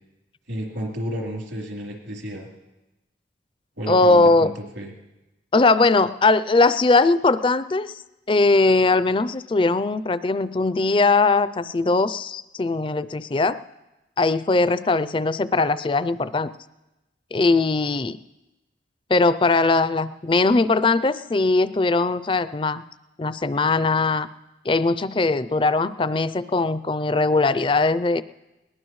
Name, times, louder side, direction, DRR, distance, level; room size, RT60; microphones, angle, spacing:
voice 1, 0.5-2.5 3.8-4.9, equal, 80° right, -1 dB, 3.5 m, -31 dB
voice 2, 3.9-4.5 5.5-7.9 8.3-13.6 14.2-16.5 17.3-18.2 19.1-22.8 23.2-24.3 24.7-28.2, left 3 dB, 25° left, 15 dB, 0.4 m, -20 dB
21.0 x 20.0 x 3.2 m, 1.0 s
head